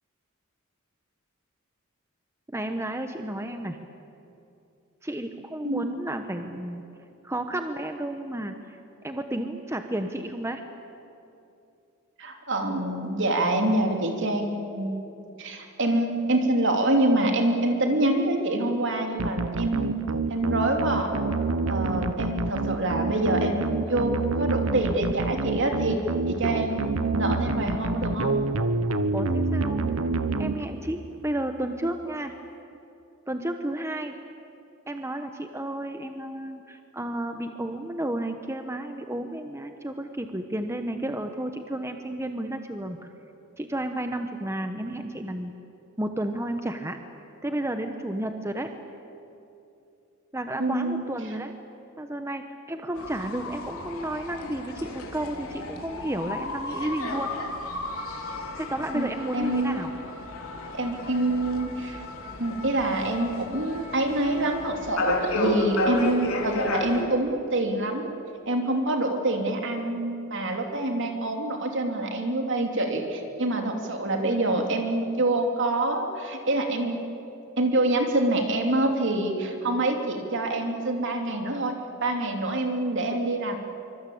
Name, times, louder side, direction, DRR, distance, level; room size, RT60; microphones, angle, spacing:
voice 1, 2.5-3.8 5.0-6.8 7.2-8.8 9.0-10.6 29.1-29.8 30.4-32.4 33.3-34.2 34.9-43.0 43.6-45.5 46.0-47.0 47.4-48.7 50.3-51.5 52.0-57.3 58.6-59.9, right 1 dB, 15° right, 6 dB, 1.0 m, -32 dB
voice 2, 12.2-15.0 15.4-21.1 21.7-26.9 27.1-28.4 50.6-51.0 58.9-59.1 59.3-59.8 60.7-62.0 62.4-68.1 68.5-77.0 77.6-81.7 82.0-83.6, right 1 dB, 60° right, 3 dB, 3.2 m, -26 dB
sound 1, 19.2-31.1, right 3 dB, 80° right, 1.2 m, -27 dB
sound 2, 53.0-67.0, left 2 dB, 80° left, 3.2 m, -33 dB
25.0 x 24.5 x 8.6 m, 2.8 s
head